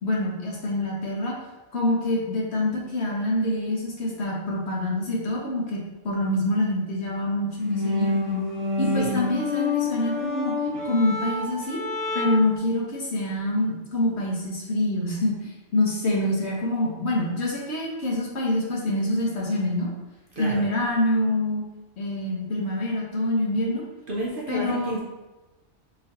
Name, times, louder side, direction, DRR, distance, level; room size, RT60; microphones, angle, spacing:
voice 1, 0.0-1.4 1.7-8.1 8.8-11.8 12.1-19.9 20.4-21.6 22.0-23.8 24.5-25.0, left 1 dB, 55° left, -3 dB, 1.2 m, -26 dB
sound 1, 7.5-12.6, left 3 dB, 85° left, 2.1 m, -27 dB
voice 2, 20.3-20.6 24.1-25.0, right 1 dB, 50° right, -4 dB, 0.7 m, -30 dB
4.9 x 3.0 x 2.8 m, 1.1 s
omnidirectional pair, 1.4 m